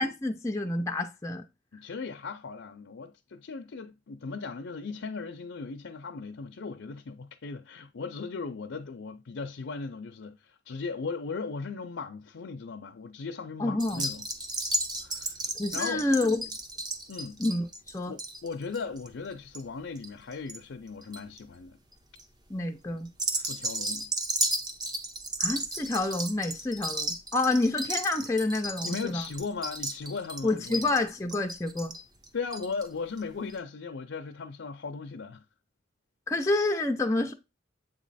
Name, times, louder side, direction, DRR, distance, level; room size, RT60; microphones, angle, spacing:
voice 1, 0.0-1.4 13.6-14.0 15.6-16.4 17.4-17.7 17.9-18.1 22.5-23.1 25.4-29.2 30.4-31.9 36.3-37.3, left 2 dB, 15° left, 0.5 m, -28 dB
voice 2, 1.7-14.2 15.0-16.4 17.1-17.4 18.1-21.8 23.4-24.1 28.8-30.9 32.3-35.4, left 4 dB, 65° left, 0.5 m, -37 dB
sound 1, 13.8-20.6 20.9-21.4 21.9-22.2 23.1-32.9 33.2-33.3 33.5-33.6, right 2 dB, 20° right, 0.8 m, -34 dB
7.9 x 3.1 x 4.0 m
head